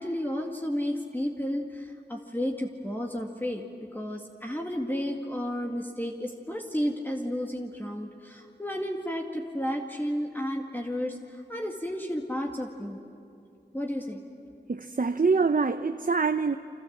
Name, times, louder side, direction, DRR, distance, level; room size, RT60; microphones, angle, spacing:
voice 1, 0.0-13.0 13.7-14.2, equal, 10° left, 0 dB, 2.1 m, -32 dB
voice 2, 14.7-16.6, right 4 dB, 45° right, 8 dB, 0.7 m, -25 dB
29.0 x 26.0 x 7.4 m, 2.4 s
wide cardioid pair, 50°, 19 cm